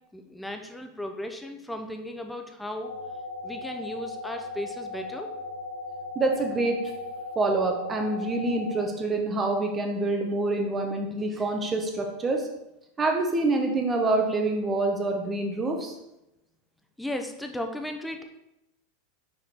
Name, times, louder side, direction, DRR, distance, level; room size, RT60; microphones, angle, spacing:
voice 1, 0.1-3.0 3.4-5.3 17.0-18.2, left 1 dB, 5° left, 5 dB, 0.7 m, -36 dB
sound 1, 2.8-8.9, left 2 dB, 80° left, 0.9 m, -37 dB
voice 2, 6.1-6.8 7.3-12.5 13.0-16.0, right 2 dB, 20° right, 3 dB, 1.1 m, -26 dB
5.2 x 5.0 x 4.5 m, 0.90 s
supercardioid pair, 120°, 0 cm